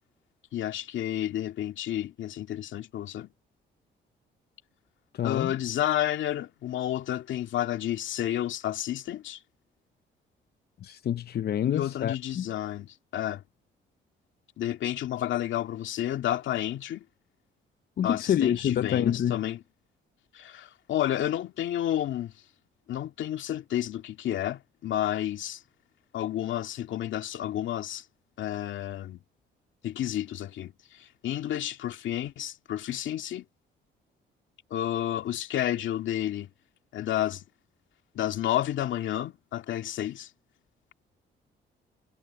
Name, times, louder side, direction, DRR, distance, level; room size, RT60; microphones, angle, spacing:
voice 1, 0.5-3.3 5.2-9.4 11.6-13.4 14.6-17.0 18.0-19.6 20.3-22.3 22.9-25.6 26.1-28.0 28.4-29.2 29.8-33.5 34.7-36.5 36.9-37.4 38.1-40.3, left 12 dB, 75° left, 2.2 m, -31 dB
voice 2, 5.1-5.5 10.8-12.5 18.0-19.4, left 10 dB, 55° left, 0.7 m, -27 dB
cardioid pair, 90°, 20 cm